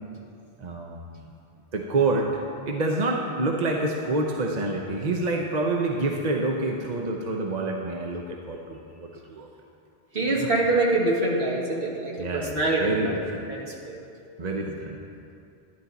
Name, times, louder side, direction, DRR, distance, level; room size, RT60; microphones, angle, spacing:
voice 1, 0.6-1.3 1.7-9.5 10.2-10.5 12.2-13.4 14.4-15.0, right 2 dB, 45° right, 1 dB, 0.8 m, -27 dB
voice 2, 10.1-13.2 13.5-14.0, right 2 dB, 60° right, -3 dB, 2.0 m, -25 dB
11.5 x 11.5 x 4.0 m, 2.5 s
omnidirectional pair, 1.1 m